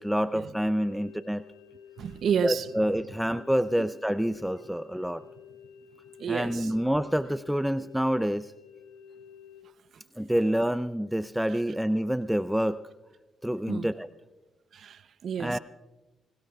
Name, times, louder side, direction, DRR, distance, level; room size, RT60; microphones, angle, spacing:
voice 1, 0.0-1.4 2.4-5.2 6.3-8.5 10.2-12.8 13.4-14.1 15.4-15.6, equal, 5° right, 0.5 m, -27 dB
sound 1, 0.6-9.6, left 8 dB, 90° left, 1.1 m, -52 dB
voice 2, 2.0-2.7 3.8-3.9 6.2-6.7 13.7-13.9 14.7-15.6, right 7 dB, 65° right, 0.7 m, -30 dB
26.0 x 18.0 x 2.4 m
supercardioid pair, 55°, 0 cm